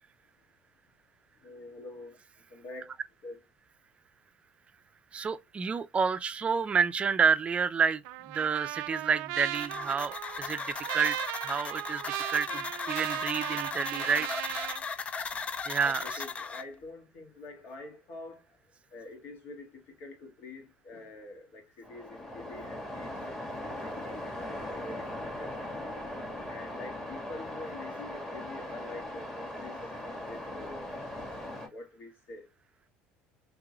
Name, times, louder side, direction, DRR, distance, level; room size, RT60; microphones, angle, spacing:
voice 1, 1.4-2.2 2.5-2.9 3.2-3.4 13.9-14.2 16.0-18.4 18.9-23.3 23.8-25.5 26.5-31.0 31.6-32.5, left 2 dB, 60° left, 1.7 m, -46 dB
voice 2, 5.1-11.2 11.4-14.3 14.5-14.7 15.7-16.2, right 6 dB, 30° right, 0.5 m, -29 dB
Trumpet, 8.0-14.8, right 16 dB, 85° right, 0.4 m, -37 dB
sound 1, 9.5-16.6, left 5 dB, 30° left, 0.5 m, -37 dB
Waves surf, 21.8-31.7, left 1 dB, 10° left, 1.9 m, -39 dB
3.7 x 3.4 x 2.9 m
supercardioid pair, 105°, 4 cm